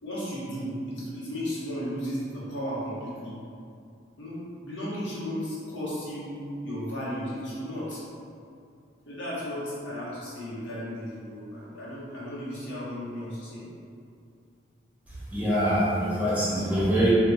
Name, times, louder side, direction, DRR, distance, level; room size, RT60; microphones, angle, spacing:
voice 1, 0.0-3.4 4.2-8.0 9.1-13.7, equal, 85° left, -8 dB, 1.0 m, -34 dB
voice 2, 15.3-17.1, equal, 10° right, -9 dB, 0.5 m, -24 dB
2.3 x 2.2 x 3.8 m, 2.5 s
head